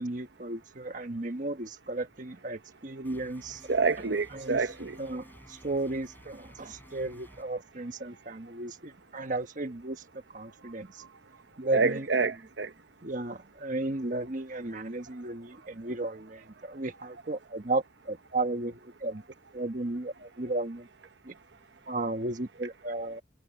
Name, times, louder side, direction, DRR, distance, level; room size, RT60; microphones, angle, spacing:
voice 1, 0.0-3.6 4.3-4.6 5.0-10.0 10.3-11.0 11.6-12.3 13.0-19.2 19.5-20.9 21.2-21.3 21.9-23.2, right 2 dB, 45° right, 1.3 m, -34 dB
sound 1, 3.0-7.4, equal, 10° left, 7.6 m, -53 dB
voice 2, 3.7-5.0 11.7-12.7, right 4 dB, 65° right, 1.0 m, -27 dB
head